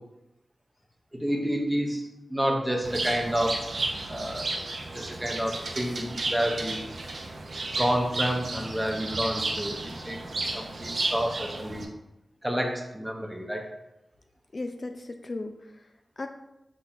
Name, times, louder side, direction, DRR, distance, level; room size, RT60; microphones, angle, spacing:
voice 1, 1.1-3.6 4.1-4.5 4.9-6.8 7.7-10.2 10.5-11.8 12.4-13.6, equal, 10° right, 2 dB, 0.9 m, -29 dB
Bird, 2.8-11.8, right 2 dB, 70° right, 0.5 m, -33 dB
voice 2, 14.5-16.3, left 2 dB, 50° left, 5 dB, 0.3 m, -37 dB
5.0 x 4.0 x 2.4 m, 0.91 s
cardioid pair, 50°, 0 cm